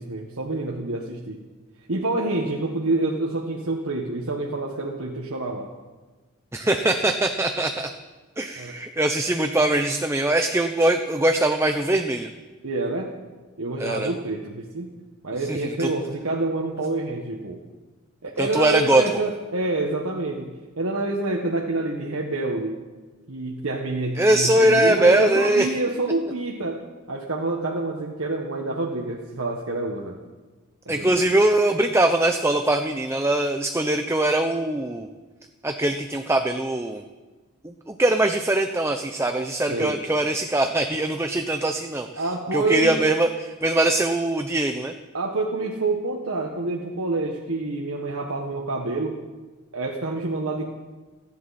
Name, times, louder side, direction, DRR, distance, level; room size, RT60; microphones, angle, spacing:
voice 1, 0.0-1.4 1.9-5.7 8.6-8.7 12.6-13.2 13.6-14.9 15.2-17.6 18.2-22.8 23.3-26.8 27.1-30.2 30.8-31.2 39.7-40.0 42.1-43.0 45.1-49.2 49.7-50.7, right 2 dB, 90° right, -1 dB, 1.5 m, -27 dB
voice 2, 6.5-7.9 8.4-12.3 13.8-14.1 15.5-15.9 18.4-19.0 24.2-25.7 30.9-35.1 35.6-37.0 37.6-42.2 42.5-44.9, right 1 dB, 10° right, 6 dB, 0.6 m, -22 dB
30.0 x 10.5 x 4.3 m, 1.3 s
head